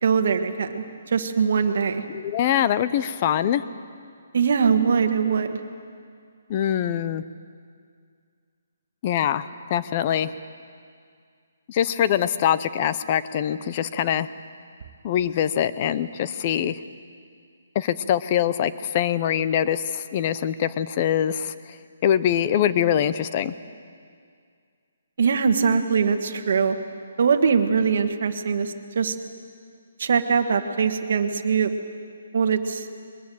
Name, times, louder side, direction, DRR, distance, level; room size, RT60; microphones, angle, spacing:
voice 1, 0.0-2.0 4.3-5.6 25.2-26.8 27.2-29.1 30.0-31.8 32.3-32.9, right 6 dB, 45° right, 6 dB, 1.4 m, -22 dB
voice 2, 2.1-3.6 6.5-7.2 9.0-10.3 11.7-14.3 15.0-16.8 17.7-21.5 22.0-23.5, left 10 dB, 25° left, 14 dB, 0.5 m, -23 dB
22.0 x 20.0 x 7.8 m, 2.2 s
hypercardioid pair, 175°, 0 cm